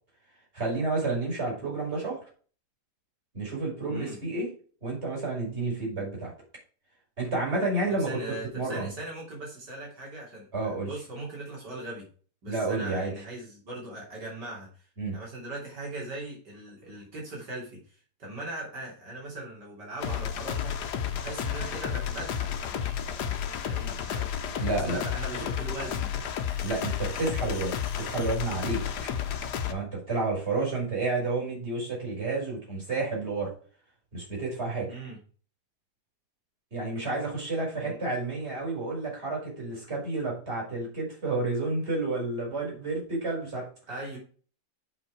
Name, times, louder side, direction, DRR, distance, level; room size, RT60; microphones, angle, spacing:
voice 1, 0.5-2.2 3.3-4.5 4.8-6.3 7.2-8.2 8.5-8.9 10.5-10.9 12.5-13.1 15.0-15.2 24.6-25.0 26.6-28.8 29.7-33.5 34.1-34.9 36.7-43.7, right 3 dB, 40° right, -3 dB, 5.0 m, -30 dB
voice 2, 3.9-4.2 8.1-10.5 10.8-12.1 12.4-14.8 15.1-20.8 21.1-26.1 34.9-35.2 37.8-38.0 43.9-44.2, right 2 dB, 85° right, -2 dB, 3.9 m, -40 dB
sound 1, 20.0-29.7, left 8 dB, 75° left, 1.5 m, -32 dB
8.1 x 5.6 x 4.8 m, 0.41 s
omnidirectional pair, 1.8 m